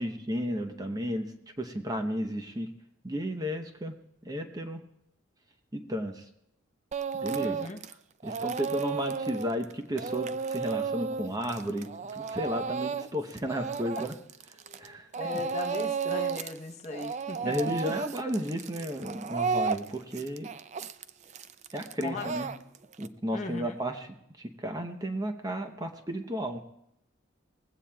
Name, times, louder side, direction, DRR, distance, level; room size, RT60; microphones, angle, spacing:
voice 1, 0.0-2.7 3.0-3.9 4.2-4.8 5.7-6.2 7.2-7.6 8.2-14.1 14.8-15.1 15.3-15.4 17.4-20.5 21.7-22.5 23.0-24.1 24.4-26.6, equal, 20° right, 6 dB, 0.8 m, -33 dB
Speech / Crying sobbing, 6.9-7.9 8.2-14.9 15.1-16.6 16.8-23.1, right 5 dB, 35° right, 0.4 m, -33 dB
voice 2, 7.4-7.8 13.9-14.0 15.2-17.7 22.0-22.3 23.3-23.8, left 3 dB, 35° left, 4 dB, 0.9 m, -38 dB
20.0 x 16.0 x 2.3 m, 0.77 s
head